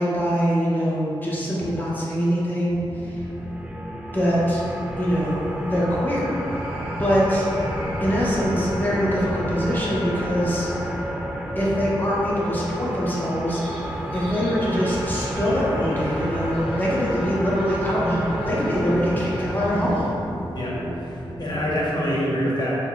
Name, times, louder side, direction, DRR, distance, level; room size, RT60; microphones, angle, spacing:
voice 1, 0.0-3.2 4.1-4.6 5.0-5.4 5.7-6.6 7.0-7.5 8.0-10.7 11.6-13.6 14.1-20.1, equal, 20° left, -7 dB, 0.8 m, -23 dB
sound 1, 2.7-21.7, equal, 90° right, 0.8 m, -34 dB
sound 2, 3.2-20.0, equal, 10° right, 0.4 m, -32 dB
sound 3, 13.5-20.1, equal, 80° left, 0.8 m, -42 dB
voice 2, 20.5-22.8, equal, 45° left, -6 dB, 1.0 m, -26 dB
5.5 x 2.2 x 2.2 m, 2.9 s
cardioid pair, 60°, 9 cm